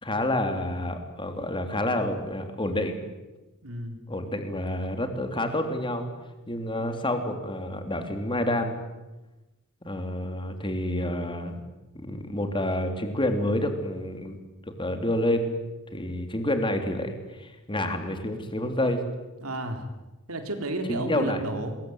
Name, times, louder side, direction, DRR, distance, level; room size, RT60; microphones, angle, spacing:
voice 1, 0.0-3.0 4.1-6.1 6.5-8.8 9.8-11.6 11.9-14.4 14.7-15.5 15.9-19.0 20.9-21.4, left 1 dB, 25° left, 6 dB, 3.3 m, -28 dB
voice 2, 3.6-4.0 19.4-19.8 20.3-21.7, right 1 dB, 80° right, 5 dB, 4.0 m, -32 dB
26.5 x 21.5 x 9.5 m, 1.1 s
head